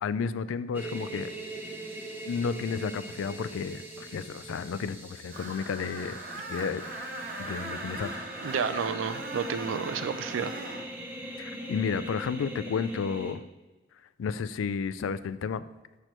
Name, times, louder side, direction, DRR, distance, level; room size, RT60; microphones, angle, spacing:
voice 1, 0.0-1.3 2.3-6.2 6.5-6.8 7.4-8.1 11.4-13.4 14.2-15.6, left 6 dB, 85° left, 15 dB, 0.3 m, -32 dB
sound 1, 0.7-13.3, right 1 dB, 10° right, 0.6 m, -41 dB
Screech, 5.3-10.9, right 2 dB, 45° right, 0.9 m, -39 dB
voice 2, 8.4-10.5, right 6 dB, 80° right, 12 dB, 0.4 m, -31 dB
6.5 x 5.8 x 3.1 m, 1.2 s
head